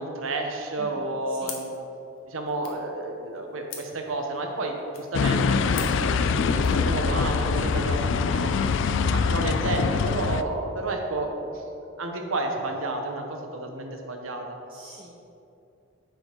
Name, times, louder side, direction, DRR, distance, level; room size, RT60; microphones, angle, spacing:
voice 1, 0.0-1.8 2.3-8.7 9.1-11.6 12.0-14.6, right 2 dB, 80° right, 3 dB, 1.0 m, -31 dB
voice 2, 0.8-1.5 7.6-7.9 14.7-15.3, right 1 dB, 25° right, -3 dB, 0.7 m, -45 dB
sound 1, 1.4-6.8, left 7 dB, 85° left, 1.2 m, -44 dB
sound 2, 5.1-10.4, left 5 dB, 60° left, 0.3 m, -24 dB
9.6 x 5.2 x 4.5 m, 2.8 s
head